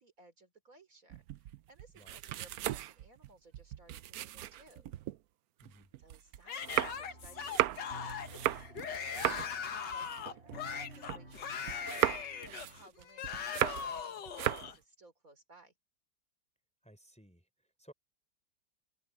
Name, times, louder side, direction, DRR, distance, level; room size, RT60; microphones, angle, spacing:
voice 1, 0.0-4.9 6.0-11.9 12.2-15.7, right 1 dB, 50° right, 4.0 m, -61 dB
sound 1, 1.1-5.2 5.6-11.4 11.7-14.0 14.3-14.8, right 13 dB, 70° right, 1.0 m, -36 dB
Yell / Screaming, 6.5-14.8, left 7 dB, 80° left, 2.1 m, -40 dB
sound 2, 6.6-12.9, right 1 dB, 35° right, 5.9 m, -53 dB
voice 2, 16.8-17.9, equal, 5° left, 4.0 m, -59 dB
open air
omnidirectional pair, 1.8 m